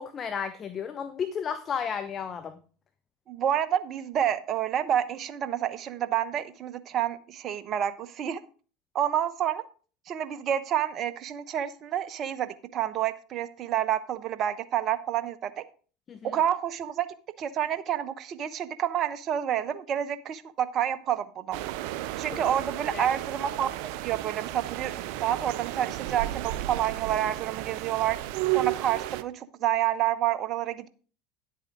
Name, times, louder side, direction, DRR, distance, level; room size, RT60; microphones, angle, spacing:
voice 1, 0.0-2.6 16.1-16.4 22.3-22.4 22.9-23.1, left 7 dB, 35° left, 12 dB, 0.8 m, -33 dB
voice 2, 3.3-8.4 8.9-9.6 10.1-15.6 16.2-17.1 17.4-21.6 22.2-23.7 24.0-28.2 28.5-30.9, right 10 dB, 45° right, 13 dB, 0.9 m, -29 dB
sound 1, 21.5-29.2, right 15 dB, 65° right, 0.6 m, -33 dB
10.5 x 8.2 x 3.8 m, 0.38 s
hypercardioid pair, 80°, 0 cm